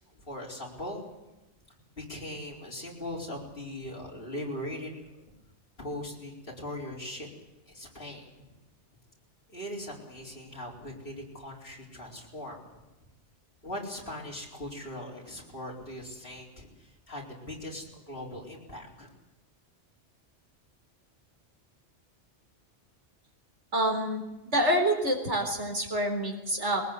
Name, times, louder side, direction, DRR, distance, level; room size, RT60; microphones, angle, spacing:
voice 1, 0.1-1.0 2.0-5.0 5.8-7.3 7.7-8.2 9.5-12.6 13.6-19.1, left 1 dB, 50° left, -2 dB, 4.7 m, -40 dB
voice 2, 23.7-26.8, right 1 dB, 75° right, 3 dB, 4.4 m, -27 dB
22.5 x 19.5 x 8.1 m, 1.0 s
omnidirectional pair, 1.2 m